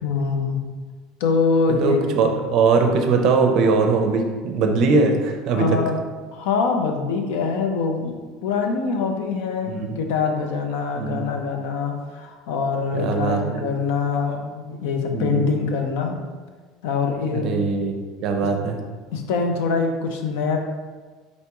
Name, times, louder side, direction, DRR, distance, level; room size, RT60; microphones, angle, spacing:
voice 1, 0.0-0.6 1.2-2.0 5.5-6.0 6.3-16.2 16.8-17.5 18.4-18.5 19.1-20.6, left 4 dB, 75° left, 4 dB, 0.6 m, -24 dB
voice 2, 1.7-5.8 9.7-9.9 10.9-11.2 12.9-13.7 15.1-15.5 17.2-18.8, right 4 dB, 45° right, 4 dB, 0.5 m, -21 dB
4.1 x 3.4 x 3.0 m, 1.4 s
cardioid pair, 165°, 0 cm